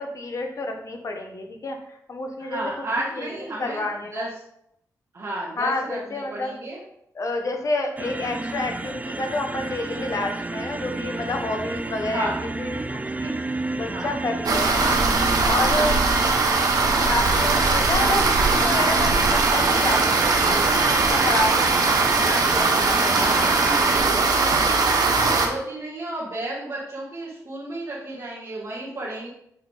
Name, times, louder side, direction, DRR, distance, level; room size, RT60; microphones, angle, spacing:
voice 1, 0.0-4.3 5.6-6.6 7.1-13.3 13.8-15.0 15.4-16.0 17.1-23.6, left 2 dB, 55° left, 3 dB, 1.1 m, -29 dB
voice 2, 2.4-3.9 4.1-4.3 5.1-6.8 12.0-12.4 13.9-14.1 16.2-16.4 22.1-22.4 23.0-23.5 24.3-29.3, right 1 dB, 55° right, -8 dB, 1.8 m, -33 dB
sound 1, 8.0-24.1, right 2 dB, 20° right, 0.5 m, -31 dB
sound 2, 14.5-25.5, right 3 dB, 70° right, 1.0 m, -20 dB
6.9 x 4.1 x 3.4 m, 0.73 s
cardioid pair, 60°, 7 cm